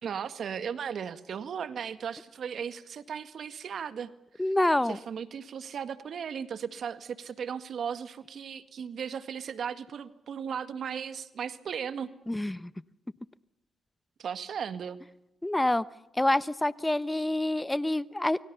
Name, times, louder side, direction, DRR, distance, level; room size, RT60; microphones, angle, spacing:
voice 1, 0.0-4.1 4.5-4.6 4.9-12.1 14.2-15.0, right 7 dB, 65° right, 12 dB, 1.9 m, -36 dB
voice 2, 4.4-5.0 12.3-12.7 15.4-15.8 16.2-18.4, left 1 dB, 15° left, 17 dB, 1.0 m, -27 dB
28.5 x 24.0 x 6.9 m, 0.87 s
supercardioid pair, 55°, 0 cm